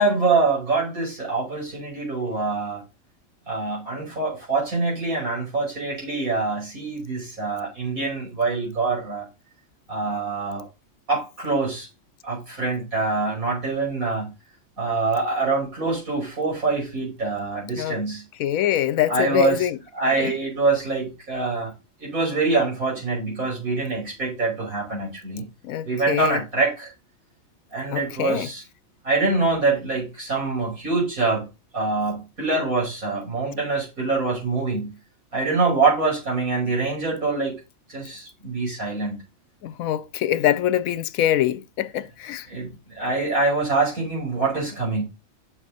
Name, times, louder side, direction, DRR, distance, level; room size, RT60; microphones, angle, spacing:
voice 1, 0.0-2.8 3.5-9.3 9.9-10.6 11.1-11.9 12.2-14.3 14.8-18.2 19.1-19.7 19.9-21.7 22.0-25.5 25.8-26.9 27.7-28.6 29.0-31.5 31.7-35.0 35.3-37.6 37.9-39.2 42.5-42.7 42.9-45.0, right 3 dB, 80° right, 5.8 m, -24 dB
voice 2, 18.4-19.8 20.2-20.3 25.6-26.4 27.9-28.5 39.6-42.5, left 12 dB, 80° left, 1.0 m, -24 dB
8.1 x 6.7 x 4.0 m
omnidirectional pair, 1.5 m